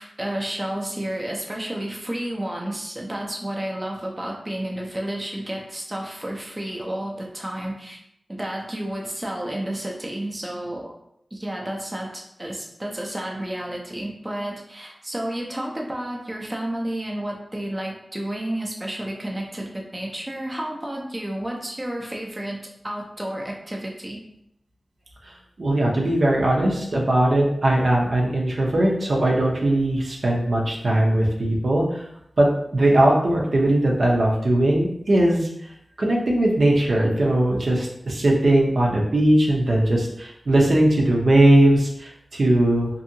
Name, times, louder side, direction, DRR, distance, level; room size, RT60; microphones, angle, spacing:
voice 1, 0.0-8.0 8.3-10.9 11.3-22.6 22.8-24.2, right 1 dB, 20° right, -1 dB, 0.5 m, -31 dB
voice 2, 25.6-32.0 32.4-32.5 32.7-35.5 36.0-42.9, right 1 dB, 65° right, -3 dB, 0.6 m, -19 dB
2.6 x 2.6 x 2.6 m, 0.76 s
wide cardioid pair, 70°, 0 cm